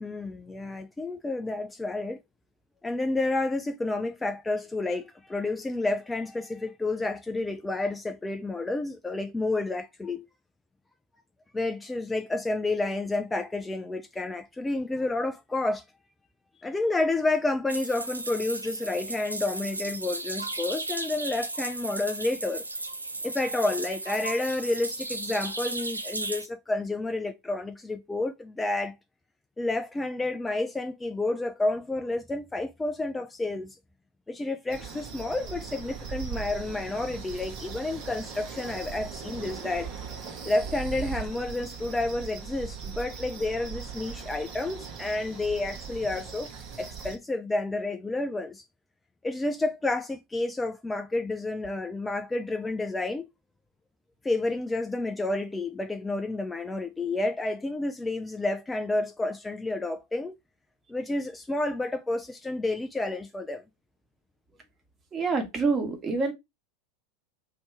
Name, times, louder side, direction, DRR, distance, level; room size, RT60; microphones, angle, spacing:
voice 1, 0.0-2.2 2.8-10.3 11.5-15.8 16.6-22.6 23.2-28.9 29.6-33.7 34.3-39.9 40.4-46.5 46.8-48.6 49.2-53.3 54.2-60.3 60.9-63.6, left 2 dB, 10° left, 0.3 m, -30 dB
sound 1, 17.7-26.5, right 2 dB, 85° right, 0.4 m, -35 dB
sound 2, 34.7-47.2, right 6 dB, 45° right, 1.0 m, -39 dB
voice 2, 65.1-66.3, right 4 dB, 25° right, 1.3 m, -26 dB
3.2 x 2.8 x 4.5 m
figure-of-eight pair, 80°, 0 cm